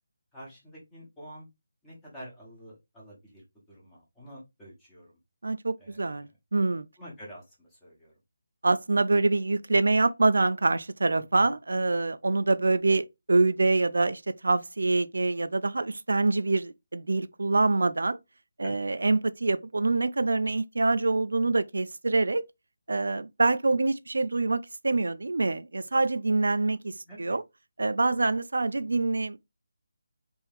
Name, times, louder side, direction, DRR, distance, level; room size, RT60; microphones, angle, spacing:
voice 1, 0.3-1.5 1.8-5.1 5.8-6.3 7.0-8.1 11.3-11.5 18.6-18.9 27.1-27.4, equal, 5° left, 1.1 m, -48 dB
voice 2, 5.4-6.9 8.6-18.2 18.6-22.4 22.9-27.4 27.8-29.4, right 3 dB, 75° right, 0.4 m, -25 dB
3.5 x 3.0 x 3.5 m
hypercardioid pair, 175°, 0 cm